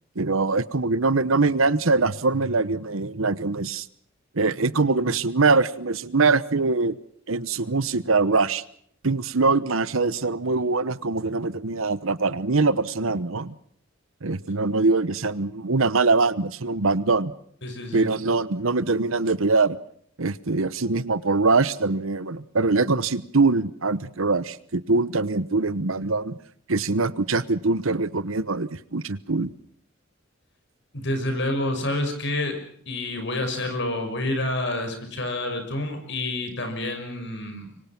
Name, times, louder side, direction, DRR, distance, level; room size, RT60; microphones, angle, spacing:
voice 1, 0.2-3.9 4.3-7.0 7.3-8.6 9.0-13.5 14.2-17.3 17.9-19.8 20.2-26.4 26.7-29.5, right 3 dB, 70° right, 17 dB, 1.0 m, -23 dB
voice 2, 17.6-18.1 30.9-32.6 32.9-37.7, left 1 dB, 55° left, 6 dB, 6.2 m, -28 dB
25.5 x 24.5 x 6.0 m, 0.63 s
head